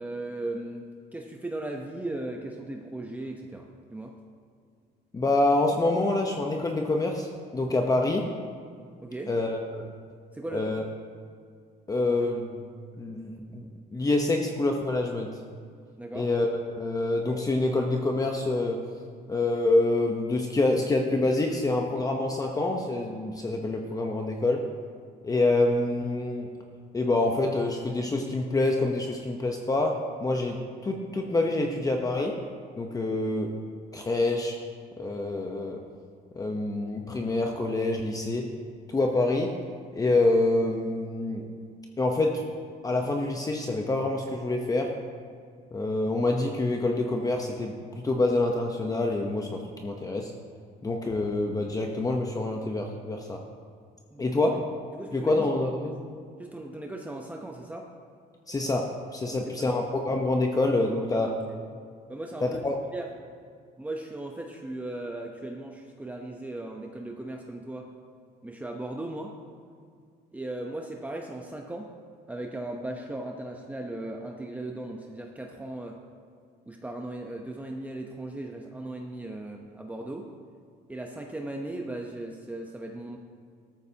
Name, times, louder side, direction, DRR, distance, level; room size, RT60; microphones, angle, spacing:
voice 1, 0.0-4.1 9.0-9.3 10.3-10.7 16.0-16.3 54.1-54.6 55.0-55.5 56.4-57.9 59.3-59.8 61.0-61.6 62.1-62.6 62.9-63.1 63.8-67.9 68.4-69.3 70.3-71.9 72.3-76.0 76.7-80.3 80.9-83.2, right 2 dB, 10° right, 1 dB, 0.8 m, -37 dB
voice 2, 5.1-7.3 7.5-8.2 9.3-9.9 10.5-10.8 11.9-12.6 13.0-15.4 16.1-18.9 19.3-24.6 25.2-26.5 26.9-32.3 32.8-33.6 33.9-34.6 35.0-35.8 36.3-38.5 38.9-39.5 39.9-41.4 42.0-42.4 42.8-45.0 45.7-50.3 50.8-53.4 54.2-54.7 55.1-56.0 58.5-61.4 62.4-62.8, left 2 dB, 20° left, 2 dB, 0.9 m, -26 dB
13.5 x 13.5 x 2.9 m, 2.2 s
cardioid pair, 110°, 17 cm